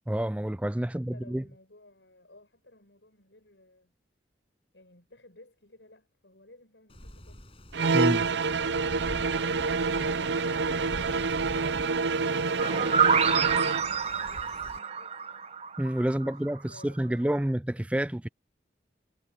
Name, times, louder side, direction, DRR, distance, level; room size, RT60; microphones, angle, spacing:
voice 1, 0.1-1.4 7.9-8.3 15.8-18.3, right 1 dB, 5° right, 0.3 m, -29 dB
voice 2, 0.9-3.9 4.7-7.5 16.0-17.6, left 1 dB, 80° left, 7.9 m, -57 dB
Wind, 6.9-14.8, equal, 30° left, 7.6 m, -46 dB
sound 1, 7.7-13.9, right 4 dB, 80° right, 0.6 m, -27 dB
sound 2, 12.6-16.3, right 6 dB, 35° right, 0.8 m, -27 dB
head